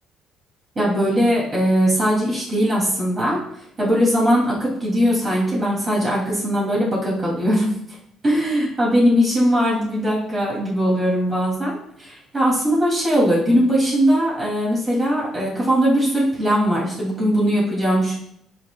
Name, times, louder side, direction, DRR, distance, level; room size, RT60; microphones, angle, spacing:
voice 1, 0.7-3.4 3.8-7.7 8.2-18.2, equal, 25° right, -6 dB, 3.2 m, -20 dB
13.0 x 6.2 x 2.5 m, 0.72 s
cardioid pair, 145°, 0 cm